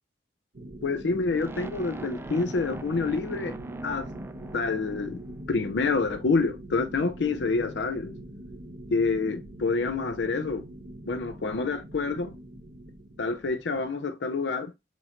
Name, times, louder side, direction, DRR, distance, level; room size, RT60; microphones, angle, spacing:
sound 1, 0.5-13.9, right 1 dB, 70° right, 1.0 m, -43 dB
voice 1, 0.8-3.6 3.8-4.1 4.5-5.2 5.5-8.1 8.9-10.6 11.1-12.3 13.2-14.7, left 4 dB, 75° left, 0.5 m, -27 dB
sound 2, 1.3-5.4, right 3 dB, 15° right, 0.3 m, -42 dB
6.0 x 2.5 x 2.9 m
head